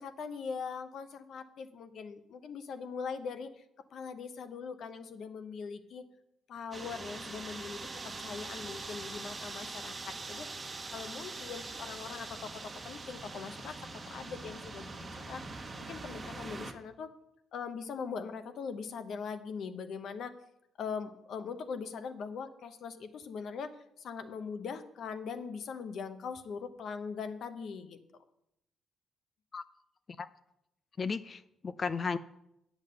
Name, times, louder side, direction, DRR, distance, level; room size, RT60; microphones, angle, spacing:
voice 1, 0.0-3.5 3.9-6.0 6.5-10.5 10.9-13.8 14.1-15.4 15.8-17.1 17.5-20.3 20.8-28.0, left 5 dB, 65° left, 9 dB, 0.9 m, -41 dB
sound 1, 6.7-16.7, right 3 dB, 30° right, 1.3 m, -43 dB
voice 2, 31.0-32.2, left 5 dB, 40° left, 13 dB, 0.4 m, -34 dB
8.5 x 7.2 x 6.7 m, 0.82 s
cardioid pair, 90°, 0 cm